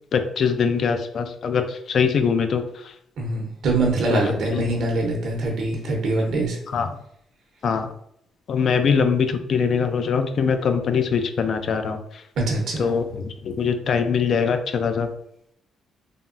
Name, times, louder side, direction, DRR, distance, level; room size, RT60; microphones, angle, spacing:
voice 1, 0.1-2.9 4.1-4.2 4.5-4.6 6.7-6.9 7.6-7.9 8.5-12.2 12.8-15.1, left 6 dB, 60° left, 7 dB, 0.3 m, -22 dB
voice 2, 3.2-6.6 12.4-12.9, right 2 dB, 70° right, 0 dB, 0.7 m, -23 dB
3.4 x 2.0 x 2.5 m, 0.72 s
cardioid pair, 90°, 0 cm